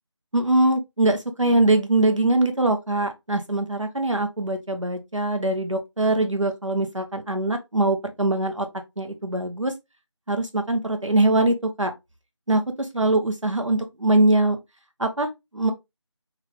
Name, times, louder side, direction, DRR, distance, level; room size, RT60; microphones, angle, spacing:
voice 1, 0.3-8.7 9.0-9.7 10.3-11.9 12.5-14.6 15.0-15.7, right 2 dB, 90° right, 1.0 m, -22 dB
3.6 x 3.3 x 3.3 m
figure-of-eight pair, 170°, 16 cm